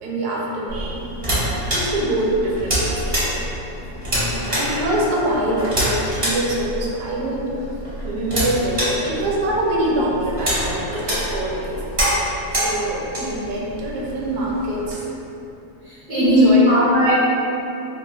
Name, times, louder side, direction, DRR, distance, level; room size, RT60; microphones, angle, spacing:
voice 1, 0.0-3.3 4.6-7.5 8.0-11.8 12.6-15.0 16.1-16.8, right 1 dB, 85° right, -3 dB, 1.1 m, -24 dB
sound 1, 0.7-14.9, equal, 40° right, 0.5 m, -26 dB
voice 2, 3.8-4.5 13.3-13.4 15.8-17.1, left 1 dB, 65° left, -13 dB, 0.5 m, -18 dB
3.5 x 2.2 x 2.4 m, 2.9 s
omnidirectional pair, 1.6 m